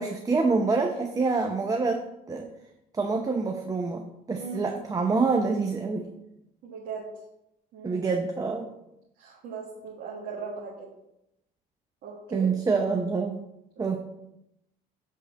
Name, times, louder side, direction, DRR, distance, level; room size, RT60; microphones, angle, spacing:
voice 1, 0.0-2.5 2.9-6.1 7.8-8.7 12.3-13.4 13.8-14.0, right 4 dB, 20° right, 4 dB, 0.8 m, -26 dB
voice 2, 6.6-7.1 7.7-8.1 9.2-10.9 12.0-12.5 13.7-13.9, right 5 dB, 80° right, -3 dB, 1.8 m, -39 dB
8.1 x 3.8 x 6.8 m, 0.85 s
cardioid pair, 110°, 17 cm